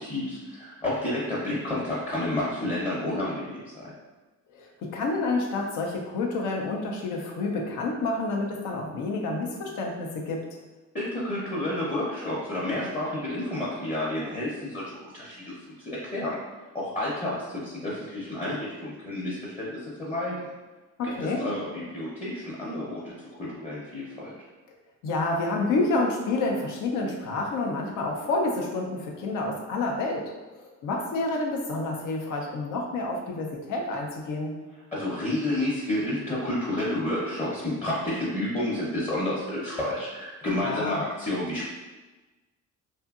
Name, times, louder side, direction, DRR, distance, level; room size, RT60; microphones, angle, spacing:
voice 1, 0.0-3.9 10.9-14.8 15.1-16.4 16.7-20.5 21.0-24.4 34.9-41.7, left 1 dB, 25° left, -7 dB, 0.7 m, -30 dB
voice 2, 4.5-10.4 21.0-21.4 25.0-34.5 40.6-41.0, left 2 dB, 85° left, 0 dB, 0.6 m, -29 dB
2.7 x 2.5 x 2.4 m, 1.2 s
cardioid pair, 90°, 30 cm